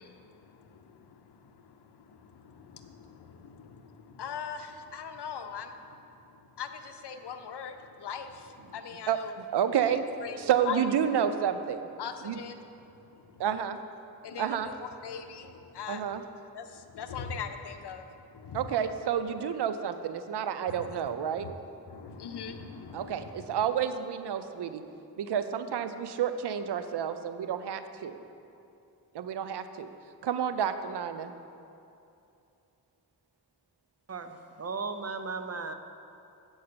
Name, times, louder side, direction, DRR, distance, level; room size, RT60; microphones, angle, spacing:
voice 1, 0.0-9.3 10.2-10.9 12.0-12.6 12.8-13.4 14.2-16.0 16.5-18.7 20.7-20.9 21.4-21.5 21.9-23.6, left 6 dB, 85° left, 8 dB, 0.6 m, -41 dB
voice 2, 9.1-10.0 10.4-11.9 12.2-12.4 13.4-13.8 14.4-14.7 15.9-16.2 18.5-21.5 22.9-24.8 25.2-28.2 29.1-29.9 30.2-31.3, right 8 dB, 90° right, 10 dB, 0.5 m, -30 dB
voice 3, 34.1-35.7, right 4 dB, 40° right, 7 dB, 0.6 m, -36 dB
7.8 x 5.4 x 6.7 m, 2.7 s
wide cardioid pair, 80°, 39 cm